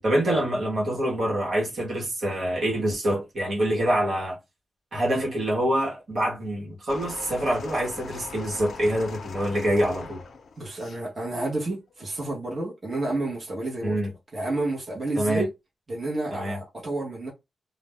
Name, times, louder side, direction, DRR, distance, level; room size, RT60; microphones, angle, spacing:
voice 1, 0.0-4.4 4.9-10.2 13.8-14.1 15.2-15.4 16.3-16.6, right 1 dB, 55° right, 1.2 m, -25 dB
sound 1, 6.9-11.0 11.9-12.0, left 4 dB, 70° left, 0.5 m, -41 dB
voice 2, 10.6-15.5 15.9-17.3, right 2 dB, 30° right, 1.0 m, -30 dB
2.5 x 2.0 x 3.3 m
wide cardioid pair, 180°, 0 cm